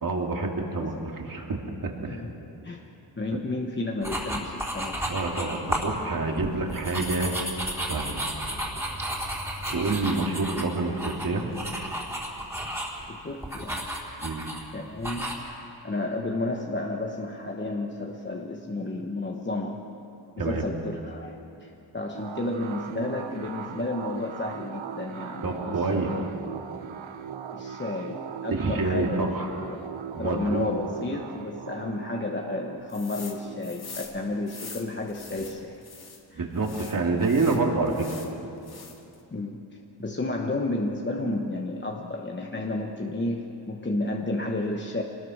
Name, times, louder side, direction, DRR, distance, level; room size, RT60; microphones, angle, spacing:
voice 1, 0.0-1.9 5.1-7.4 7.9-8.2 9.7-11.4 14.2-14.5 20.4-20.6 25.4-26.1 28.5-29.5 30.1-30.7 36.4-38.0, right 3 dB, 45° right, 1 dB, 2.9 m, -27 dB
voice 2, 3.2-5.1 13.1-13.9 14.7-19.8 20.4-26.3 27.5-29.4 29.6-35.8 36.3-36.5 39.3-39.6 40.0-45.0, left 2 dB, 25° left, 1 dB, 1.2 m, -32 dB
sound 1, 4.0-5.9 6.3-13.0 13.4-14.6 15.0-15.3, equal, 5° right, 3.6 m, -32 dB
sound 2, 22.1-35.4, right 8 dB, 80° right, 1.1 m, -40 dB
sound 3, 32.9-33.4 33.6-36.2 36.6-38.3 38.6-39.2, left 5 dB, 55° left, 2.6 m, -43 dB
26.5 x 20.0 x 6.5 m, 2.8 s
wide cardioid pair, 125°, 46 cm